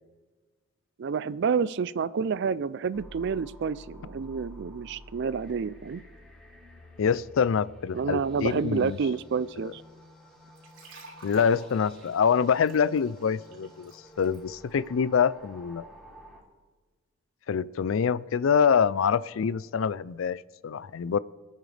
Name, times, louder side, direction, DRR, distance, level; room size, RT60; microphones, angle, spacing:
voice 1, 1.0-6.0 7.9-9.8, right 5 dB, 60° right, 18 dB, 0.4 m, -29 dB
sound 1, 2.9-16.4, left 1 dB, 5° left, 3.1 m, -50 dB
voice 2, 7.0-9.0 11.2-13.9 14.2-15.8 17.5-21.2, left 6 dB, 75° left, 19 dB, 0.4 m, -25 dB
sound 2, 10.6-14.4, right 2 dB, 75° right, 3.4 m, -49 dB
26.5 x 9.0 x 3.3 m, 1.4 s
head